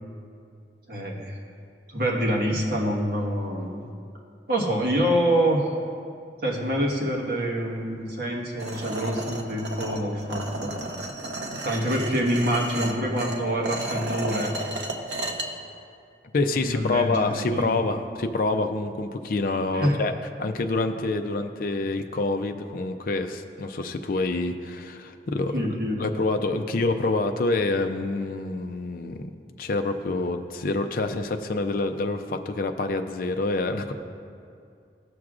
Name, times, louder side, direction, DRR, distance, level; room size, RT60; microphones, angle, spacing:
voice 1, 0.9-1.4 1.9-3.8 4.5-5.7 6.4-10.7 11.6-14.5 16.6-17.7 19.7-20.0 25.5-26.0, equal, 55° right, -3 dB, 1.3 m, -26 dB
sound 1, 8.6-15.5, right 2 dB, 80° right, 0.8 m, -33 dB
voice 2, 16.3-20.1 20.4-25.5 26.0-29.3 29.6-33.9, left 2 dB, 50° left, 7 dB, 0.4 m, -27 dB
15.5 x 6.2 x 2.4 m, 2.4 s
head